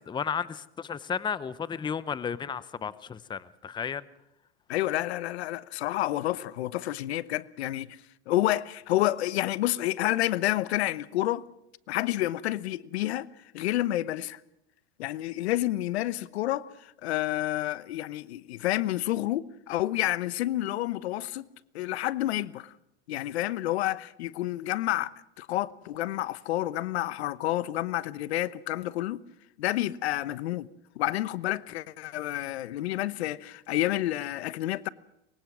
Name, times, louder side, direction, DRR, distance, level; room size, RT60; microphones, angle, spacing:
voice 1, 0.1-4.1, left 7 dB, 15° left, 0.8 m, -33 dB
voice 2, 4.7-8.0 8.3-11.4 11.9-13.3 13.5-14.4 15.0-21.5 21.7-22.7 23.1-29.2 29.6-30.7 31.0-34.9, left 15 dB, 70° left, 1.0 m, -29 dB
24.0 x 22.0 x 6.2 m
hypercardioid pair, 115°, 33 cm